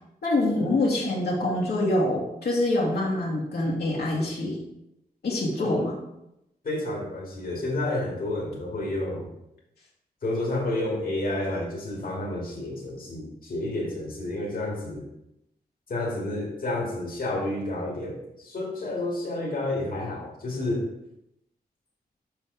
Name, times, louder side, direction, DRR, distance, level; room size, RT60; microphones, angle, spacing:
voice 1, 0.2-4.6 5.2-5.9, left 1 dB, 85° left, -5 dB, 1.9 m, -25 dB
voice 2, 6.6-9.3 10.2-15.0 15.9-20.9, left 1 dB, 60° left, -3 dB, 1.8 m, -30 dB
6.8 x 5.7 x 3.7 m, 0.85 s
wide cardioid pair, 100°, 16 cm